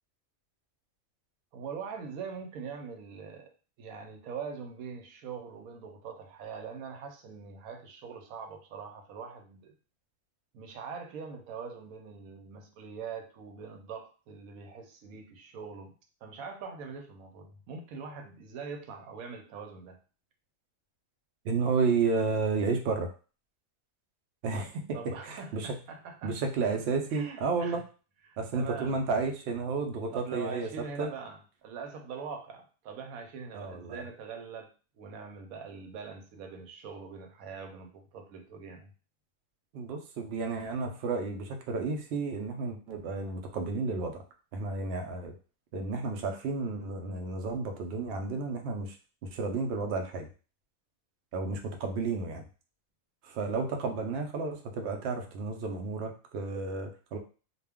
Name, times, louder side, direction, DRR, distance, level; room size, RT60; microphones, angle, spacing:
voice 1, 1.5-9.7 10.5-15.9 16.2-20.0 24.9-26.3 27.1-27.8 28.3-29.0 30.1-34.7 35.0-38.9, right 5 dB, 85° right, 4 dB, 1.0 m, -43 dB
voice 2, 21.4-23.1 24.4-25.0 25.2-25.7 26.2-27.8 28.4-30.7 31.0-31.1 33.5-34.0 39.7-44.2 44.5-45.3 45.7-49.0 49.2-50.3 51.3-52.5 53.2-57.2, right 4 dB, 60° right, 3 dB, 0.7 m, -32 dB
2.4 x 2.2 x 3.4 m, 0.36 s
omnidirectional pair, 1.5 m